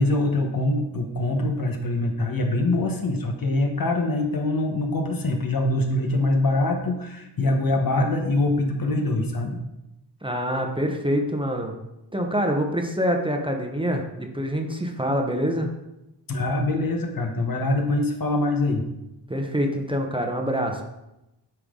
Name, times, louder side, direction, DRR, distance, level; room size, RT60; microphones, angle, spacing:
voice 1, 0.0-9.6 16.3-18.9, left 2 dB, 50° left, 3 dB, 1.1 m, -24 dB
voice 2, 10.2-11.7 12.1-15.7 19.3-20.8, equal, 10° right, 2 dB, 0.9 m, -25 dB
9.0 x 3.3 x 3.8 m, 0.92 s
cardioid pair, 60°, 43 cm